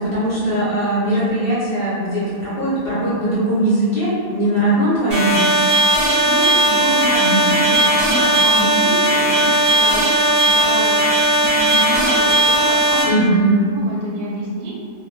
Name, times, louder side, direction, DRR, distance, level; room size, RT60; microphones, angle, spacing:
voice 1, 0.0-5.6 13.0-13.5, right 1 dB, 50° left, -10 dB, 0.7 m, -19 dB
sound 1, 5.1-13.0, right 1 dB, 50° right, 0.4 m, -16 dB
voice 2, 6.2-13.4 13.7-14.7, right 2 dB, 80° right, -3 dB, 1.1 m, -27 dB
2.3 x 2.2 x 3.1 m, 2.2 s
omnidirectional pair, 1.6 m